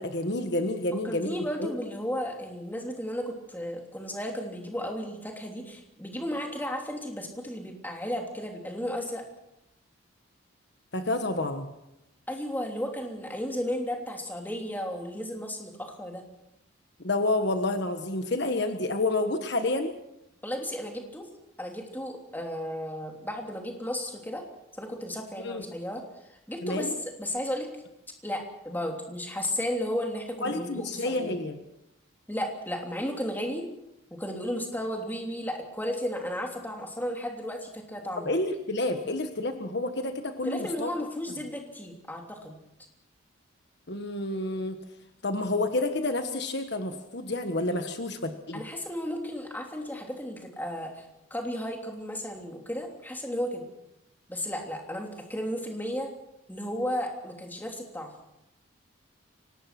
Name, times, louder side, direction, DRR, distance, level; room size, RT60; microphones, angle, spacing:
voice 1, 0.0-1.7 10.9-11.7 17.0-19.9 25.4-25.6 26.6-26.9 30.4-31.6 38.2-40.9 43.9-44.8 45.2-48.6, left 2 dB, 55° left, 7 dB, 1.5 m, -29 dB
voice 2, 1.0-9.2 12.3-16.2 20.4-21.3 21.6-24.4 24.8-26.0 26.3-27.7 28.2-31.3 32.3-33.7 34.1-38.3 40.4-42.6 48.5-51.0 51.3-53.7 54.3-56.1 56.5-58.1, equal, 10° left, 2 dB, 3.2 m, -34 dB
24.5 x 19.0 x 6.1 m, 0.87 s
head